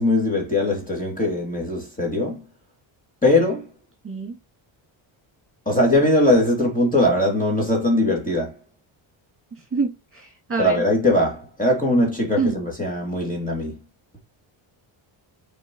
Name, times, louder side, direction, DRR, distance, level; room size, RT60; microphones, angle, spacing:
voice 1, 0.0-2.4 3.2-3.7 5.7-8.5 10.6-13.7, left 1 dB, 15° left, 2.8 m, -20 dB
voice 2, 9.7-10.8 12.4-12.6, right 4 dB, 25° right, 2.5 m, -25 dB
6.9 x 4.5 x 3.0 m
cardioid pair, 115°, 49 cm